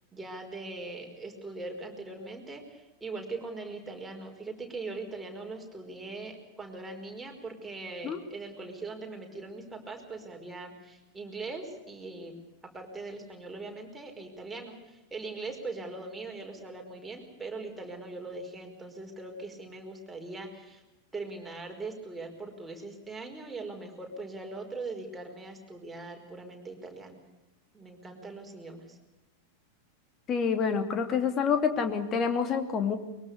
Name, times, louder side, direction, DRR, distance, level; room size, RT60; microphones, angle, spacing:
voice 1, 0.1-12.4 12.6-20.8 21.1-27.2 27.7-29.0, right 3 dB, 10° right, 2 dB, 5.1 m, -41 dB
voice 2, 30.3-33.0, left 6 dB, 30° left, 7 dB, 2.8 m, -27 dB
23.0 x 22.5 x 6.7 m, 0.99 s
figure-of-eight pair, 90°, 0 cm